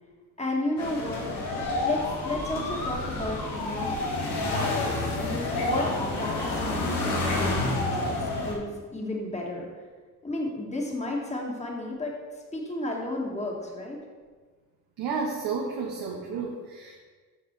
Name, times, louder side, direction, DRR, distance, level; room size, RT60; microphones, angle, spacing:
voice 1, 0.4-1.3 1.8-4.0 4.5-9.7 10.2-12.2 12.5-14.0, left 1 dB, 15° left, -1 dB, 1.8 m, -33 dB
sound 1, 0.8-8.5, left 2 dB, 90° left, 1.5 m, -29 dB
voice 2, 15.0-17.0, right 5 dB, 80° right, -2 dB, 1.0 m, -31 dB
6.2 x 6.0 x 4.6 m, 1.4 s
supercardioid pair, 60°, 38 cm